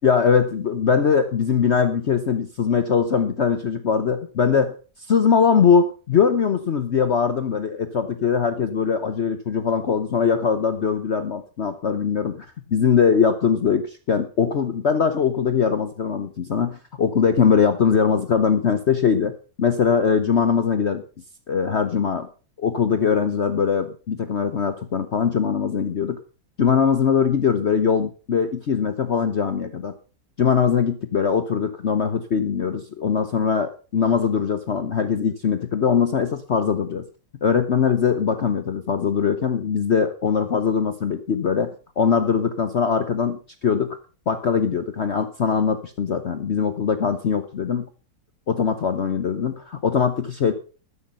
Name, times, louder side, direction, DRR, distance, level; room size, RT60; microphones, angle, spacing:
voice 1, 0.0-4.7 5.1-19.3 19.6-21.0 21.5-22.3 22.6-26.2 26.6-29.9 30.4-37.1 37.4-44.0 44.3-47.9 48.5-50.5, left 6 dB, 50° left, 10 dB, 1.0 m, -21 dB
13.0 x 10.5 x 5.5 m, 0.37 s
omnidirectional pair, 1.9 m